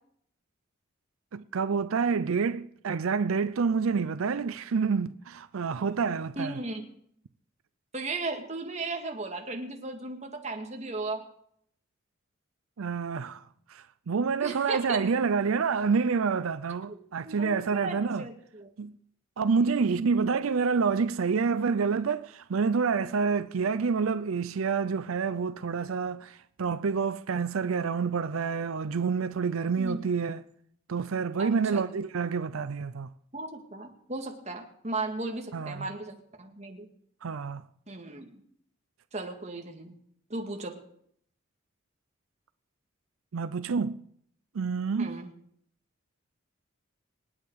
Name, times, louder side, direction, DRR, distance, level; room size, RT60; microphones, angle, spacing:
voice 1, 1.3-6.6 12.8-18.3 18.8-19.0 19.4-30.4 30.9-33.1 35.5-35.9 37.2-37.6 43.3-44.0 44.5-45.2, right 5 dB, 85° right, 0.5 m, -28 dB
voice 2, 6.4-6.8 7.9-11.2 14.4-15.0 16.9-17.0 17.3-18.7 29.8-30.0 31.4-31.8 33.3-36.9 37.9-38.3 39.1-39.9 40.3-40.8 45.0-45.3, right 2 dB, 35° right, 1.9 m, -36 dB
26.5 x 8.9 x 4.7 m
head